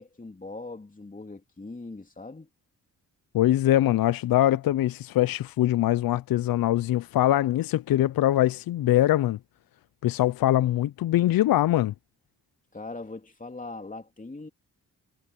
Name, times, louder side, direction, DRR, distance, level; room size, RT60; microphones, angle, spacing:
voice 1, 0.0-2.5 12.7-14.5, left 3 dB, 20° left, 3.2 m, -40 dB
voice 2, 3.3-9.4 10.0-11.9, left 13 dB, 75° left, 0.5 m, -23 dB
cardioid pair, 80°, 35 cm